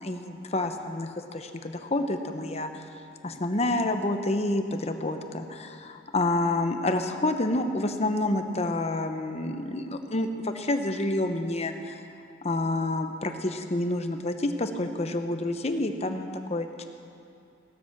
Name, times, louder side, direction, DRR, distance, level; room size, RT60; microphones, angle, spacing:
voice 1, 0.0-2.9 3.2-12.0 12.4-16.8, left 2 dB, 35° left, 6 dB, 0.9 m, -28 dB
17.5 x 12.5 x 5.9 m, 2.5 s
head